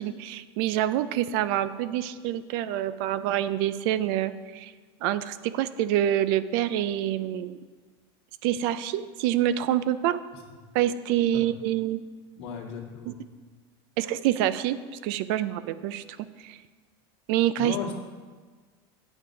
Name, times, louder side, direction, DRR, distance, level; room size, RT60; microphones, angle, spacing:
voice 1, 0.0-4.7 5.0-7.6 8.4-10.2 10.7-12.0 13.1-13.2 14.0-16.0 16.4-16.6 17.3-17.7, right 12 dB, 65° right, 14 dB, 0.5 m, -26 dB
voice 2, 12.4-13.2 17.6-18.0, left 6 dB, 80° left, 0 dB, 2.0 m, -36 dB
9.0 x 7.1 x 5.1 m, 1.5 s
supercardioid pair, 130°, 13 cm